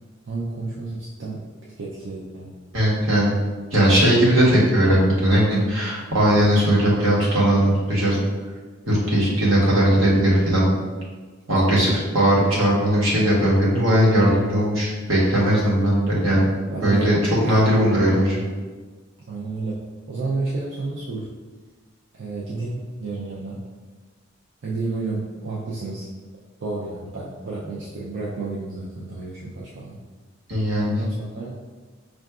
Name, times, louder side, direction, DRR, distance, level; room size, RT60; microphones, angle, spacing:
voice 1, 0.3-1.4 1.8-2.5 11.7-11.9 16.7-17.2 17.4-17.8 19.3-21.3 22.1-23.6 24.6-26.1 26.6-30.0 30.8-31.6, right 3 dB, 65° right, -5 dB, 0.5 m, -31 dB
voice 2, 2.7-3.3 3.7-8.2 8.9-10.7 11.5-16.5 16.8-17.2 17.4-18.4 30.5-30.9, right 1 dB, 80° right, -6 dB, 1.2 m, -18 dB
5.5 x 2.4 x 2.4 m, 1.4 s
head